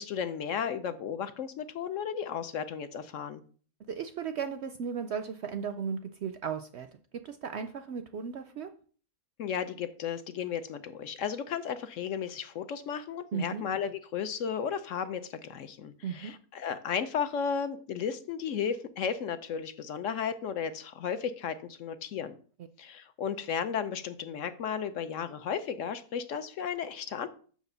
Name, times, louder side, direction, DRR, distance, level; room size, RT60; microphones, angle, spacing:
voice 1, 0.0-3.4 9.4-22.3 22.8-27.3, left 7 dB, 65° left, 11 dB, 0.9 m, -34 dB
voice 2, 3.9-6.9 7.1-8.7 13.3-13.7 16.0-16.3, right 6 dB, 65° right, 9 dB, 0.7 m, -35 dB
6.1 x 4.9 x 6.7 m, 0.43 s
omnidirectional pair, 1.5 m